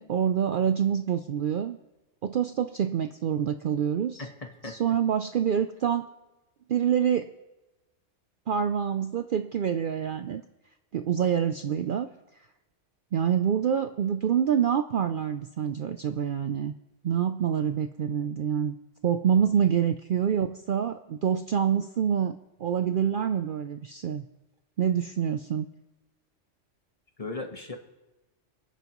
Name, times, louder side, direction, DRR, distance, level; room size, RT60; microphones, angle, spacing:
voice 1, 0.0-1.8 2.2-4.2 4.6-6.1 6.7-7.3 8.5-10.4 10.9-12.1 13.1-16.7 17.0-18.7 19.0-24.3 24.8-25.7, right 8 dB, 60° right, 8 dB, 0.6 m, -26 dB
voice 2, 4.2-4.8 19.3-19.5 27.2-27.8, left 3 dB, 30° left, 4 dB, 1.2 m, -37 dB
27.5 x 9.4 x 3.0 m, 1.0 s
omnidirectional pair, 1.3 m